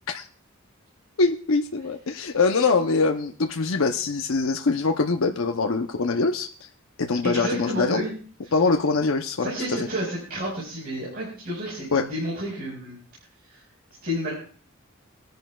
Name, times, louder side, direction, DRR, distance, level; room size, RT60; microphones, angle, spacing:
voice 1, 1.2-6.5 7.0-8.0 8.5-9.9 11.9-12.1, left 4 dB, 80° left, 5 dB, 0.7 m, -23 dB
voice 2, 7.2-8.1 8.4-8.5 9.4-13.0 13.4-13.6 14.0-14.3, equal, 50° right, -5 dB, 4.7 m, -30 dB
23.0 x 10.5 x 2.3 m, 0.42 s
head